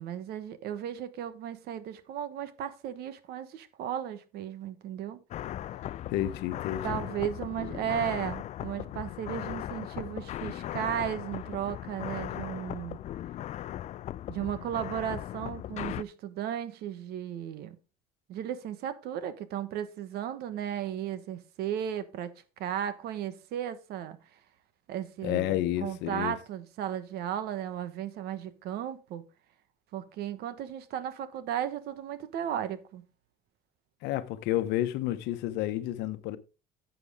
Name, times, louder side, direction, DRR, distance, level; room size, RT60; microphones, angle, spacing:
voice 1, 0.0-5.2 6.8-13.0 14.3-17.8 18.3-24.2 24.9-29.2 29.9-33.0, right 10 dB, 70° right, 1.3 m, -35 dB
sound 1, 5.3-16.0, left 12 dB, 45° left, 0.4 m, -38 dB
voice 2, 6.1-7.0 25.2-26.4 34.0-36.4, left 14 dB, 85° left, 1.0 m, -30 dB
9.9 x 7.7 x 3.6 m
cardioid pair, 130°, 17 cm